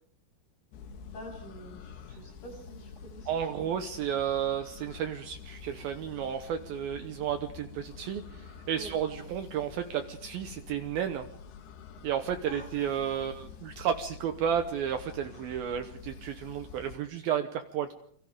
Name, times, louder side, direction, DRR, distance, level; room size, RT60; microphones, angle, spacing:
sound 1, 0.7-17.0, left 5 dB, 75° left, 3.5 m, -48 dB
voice 1, 1.1-3.7 8.7-8.9 12.5-13.4, equal, 45° left, 0 dB, 9.6 m, -47 dB
voice 2, 3.3-11.3 12.0-17.9, right 9 dB, 70° right, 6 dB, 2.6 m, -32 dB
29.0 x 25.0 x 3.6 m, 0.62 s
omnidirectional pair, 4.8 m